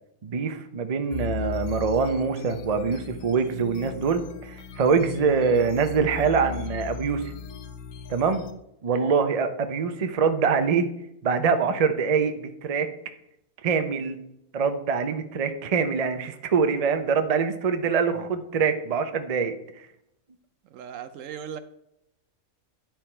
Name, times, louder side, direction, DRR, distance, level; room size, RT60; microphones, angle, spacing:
voice 1, 0.2-7.3 8.1-8.4 8.8-10.9 11.2-12.9 13.6-14.2 14.5-19.5, right 5 dB, 45° right, 8 dB, 0.4 m, -24 dB
sound 1, 1.1-8.5, left 10 dB, 80° left, 1.1 m, -37 dB
voice 2, 20.7-21.6, right 8 dB, 70° right, 11 dB, 0.9 m, -38 dB
10.5 x 4.5 x 4.4 m, 0.79 s
omnidirectional pair, 1.5 m